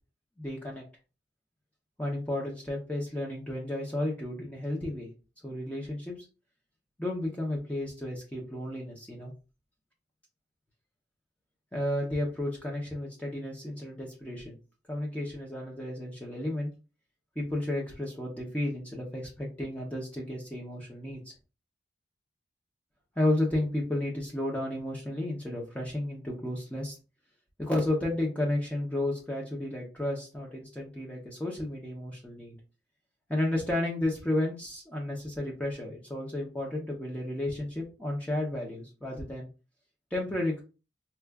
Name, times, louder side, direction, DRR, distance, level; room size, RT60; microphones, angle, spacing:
voice 1, 0.4-0.8 2.0-5.1 5.4-6.2 7.0-9.3 11.7-14.6 14.9-16.7 17.4-21.3 23.2-27.0 27.6-32.5 33.3-39.5 40.1-40.6, left 1 dB, 10° left, -2 dB, 0.7 m, -32 dB
4.4 x 2.4 x 2.3 m, 0.31 s
head